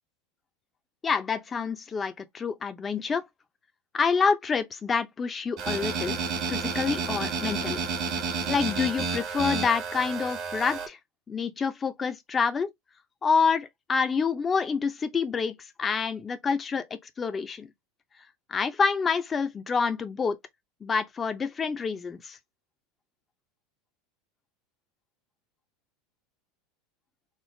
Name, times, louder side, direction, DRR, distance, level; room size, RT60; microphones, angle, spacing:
voice 1, 1.0-3.2 3.9-6.2 6.5-7.8 8.5-11.0 11.3-12.7 13.2-16.8 17.2-17.7 18.5-20.4 20.8-22.4, left 5 dB, 25° left, 0.6 m, -27 dB
sound 1, 5.6-10.9, right 4 dB, 50° right, 1.2 m, -30 dB
3.2 x 2.1 x 3.1 m
hypercardioid pair, 95°, 0 cm